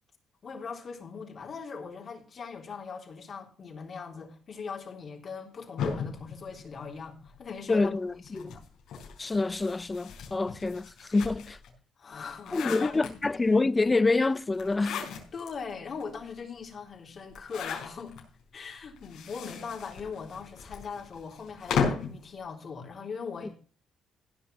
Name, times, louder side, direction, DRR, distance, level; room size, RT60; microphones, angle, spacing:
voice 1, 0.4-7.9 8.2-8.6 12.0-13.2 15.1-18.2 18.5-23.5, left 5 dB, 50° left, 3.7 m, -40 dB
sound 1, 5.8-7.4 8.2-11.7 12.1-13.5 14.5-15.5 16.0-16.1 16.3-16.4 17.3-18.2 19.0-22.2, left 6 dB, 80° left, 4.8 m, -35 dB
voice 2, 7.7-8.5 9.2-11.6 12.5-15.0, left 3 dB, 20° left, 0.7 m, -27 dB
16.5 x 5.8 x 6.9 m
cardioid pair, 90°, 0 cm